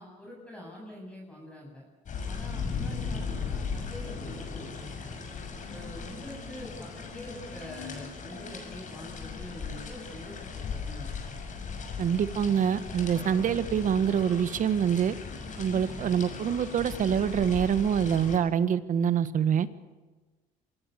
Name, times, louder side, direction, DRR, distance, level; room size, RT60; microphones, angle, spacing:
voice 1, 0.0-1.8 2.3-5.2 5.7-11.1, left 1 dB, 5° left, -2 dB, 7.8 m, -45 dB
sound 1, 2.1-18.4, left 5 dB, 45° left, 6.5 m, -37 dB
voice 2, 12.0-15.1 15.6-19.7, right 8 dB, 50° right, 14 dB, 1.5 m, -25 dB
26.0 x 19.5 x 8.4 m, 1.3 s
cardioid pair, 110°, 17 cm